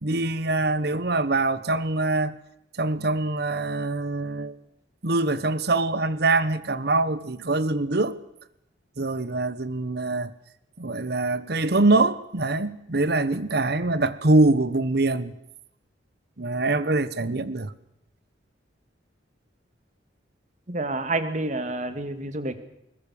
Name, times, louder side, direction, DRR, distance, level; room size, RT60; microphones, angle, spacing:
voice 1, 0.0-2.4 2.8-4.6 5.0-8.2 9.0-10.3 10.8-15.3 16.4-17.7, right 2 dB, 60° right, 1.1 m, -24 dB
voice 2, 20.7-22.5, right 2 dB, 40° right, 1.9 m, -28 dB
21.5 x 20.5 x 7.0 m
head